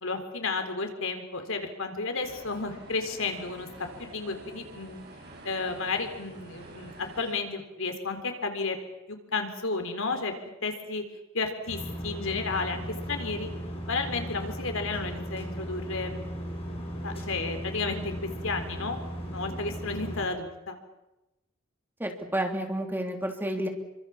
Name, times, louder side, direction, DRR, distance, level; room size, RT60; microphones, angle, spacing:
voice 1, 0.0-3.7 4.0-5.0 5.4-8.8 9.1-10.3 10.6-11.0 11.3-12.8 13.1-13.5 13.9-16.2 17.0-19.0 19.3-20.8, left 3 dB, 70° left, 6 dB, 4.0 m, -32 dB
sound 1, 2.2-7.3, right 1 dB, 50° right, 7.4 m, -48 dB
sound 2, 11.7-20.3, equal, 30° left, 6.5 m, -37 dB
voice 2, 22.0-23.7, right 1 dB, 10° right, 3 dB, 3.2 m, -30 dB
28.5 x 24.5 x 7.3 m, 0.95 s
head